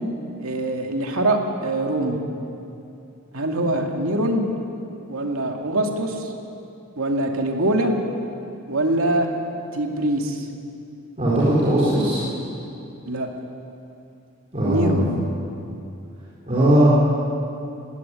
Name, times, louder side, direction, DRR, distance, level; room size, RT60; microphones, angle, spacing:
voice 1, 0.4-2.2 3.3-4.4 5.1-6.3 7.0-7.9 8.7-9.3 9.7-10.4 13.1-13.3 14.6-15.2, right 1 dB, 85° right, 2 dB, 2.4 m, -23 dB
voice 2, 11.2-12.2 14.5-15.0 16.5-16.9, right 1 dB, 30° right, -9 dB, 4.4 m, -18 dB
18.5 x 17.5 x 9.9 m, 2.7 s
head